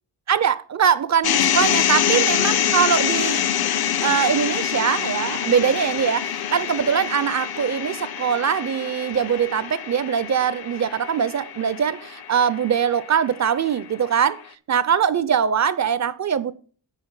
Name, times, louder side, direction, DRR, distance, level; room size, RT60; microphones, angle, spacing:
voice 1, 0.3-3.4 4.0-14.4 14.7-16.5, right 7 dB, 40° right, 0.4 m, -22 dB
sound 1, 1.2-13.4, left 9 dB, 60° left, 0.5 m, -25 dB
8.4 x 5.8 x 5.4 m
wide cardioid pair, 155°, 44 cm